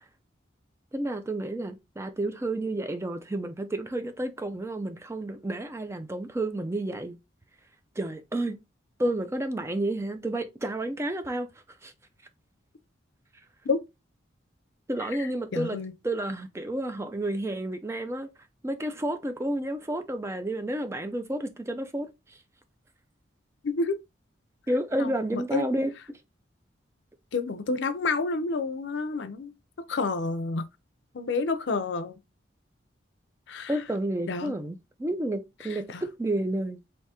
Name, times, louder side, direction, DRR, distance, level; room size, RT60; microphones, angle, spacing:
voice 1, 0.9-7.2 8.0-8.6 9.0-11.5 11.8-11.9 14.9-15.8 16.0-18.3 18.6-22.1 24.7-26.2 33.7-36.8, right 1 dB, 15° right, 0.3 m, -30 dB
voice 2, 15.2-15.9 23.6-23.9 25.0-25.7 27.3-29.5 29.9-30.7 31.1-32.2 33.5-33.7 34.3-34.5 35.9-36.0, left 4 dB, 65° left, 0.5 m, -29 dB
3.5 x 2.7 x 2.8 m
head